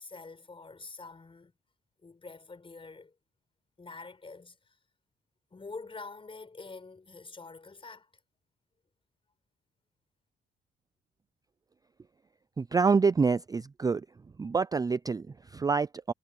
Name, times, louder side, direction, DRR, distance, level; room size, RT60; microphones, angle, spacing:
voice 1, 0.0-1.5 2.0-3.1 3.8-4.8 5.5-8.1, left 3 dB, 25° left, 5.0 m, -46 dB
voice 2, 12.6-14.1 14.4-16.1, right 5 dB, 20° right, 0.4 m, -27 dB
cardioid pair, 90°, 20 cm